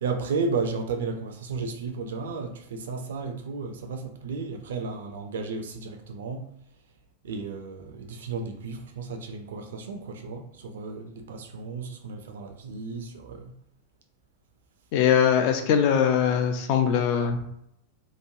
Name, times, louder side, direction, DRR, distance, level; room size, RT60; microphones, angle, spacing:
voice 1, 0.0-6.5 7.2-13.4, right 4 dB, 60° right, 5 dB, 0.4 m, -33 dB
voice 2, 14.9-17.4, left 8 dB, 45° left, 5 dB, 0.4 m, -21 dB
3.0 x 2.2 x 2.6 m, 0.74 s
figure-of-eight pair, 90°, 0 cm